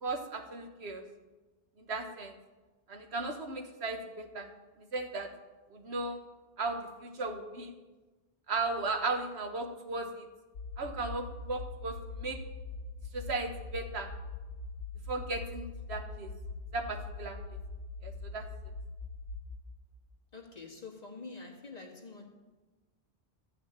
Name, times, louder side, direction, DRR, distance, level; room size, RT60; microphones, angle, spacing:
voice 1, 0.0-1.0 1.8-2.3 2.9-4.5 4.8-5.3 5.7-6.2 6.6-7.7 8.5-10.3 10.8-12.4 13.1-14.1 15.1-16.3 16.7-17.4 18.0-18.4, right 3 dB, 80° right, 5 dB, 1.5 m, -36 dB
sound 1, 10.6-19.4, left 3 dB, 75° left, 1.0 m, -42 dB
voice 2, 20.3-22.3, left 4 dB, 40° left, 1 dB, 1.8 m, -46 dB
13.0 x 5.8 x 8.7 m, 1.2 s
omnidirectional pair, 1.1 m